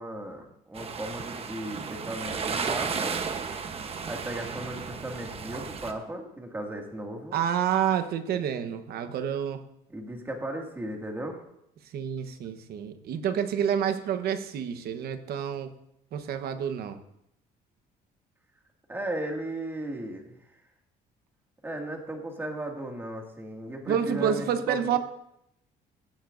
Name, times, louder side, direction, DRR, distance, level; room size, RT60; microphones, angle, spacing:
voice 1, 0.0-3.2 4.0-7.4 9.9-11.4 18.9-20.4 21.6-25.0, right 1 dB, 15° right, 1 dB, 2.2 m, -36 dB
sound 1, 0.7-5.9, right 5 dB, 35° right, 1.0 m, -34 dB
voice 2, 7.3-9.6 11.9-15.7 16.1-17.0 23.9-25.0, right 8 dB, 70° right, 9 dB, 1.1 m, -28 dB
17.0 x 9.2 x 2.6 m, 0.78 s
cardioid pair, 110°, 17 cm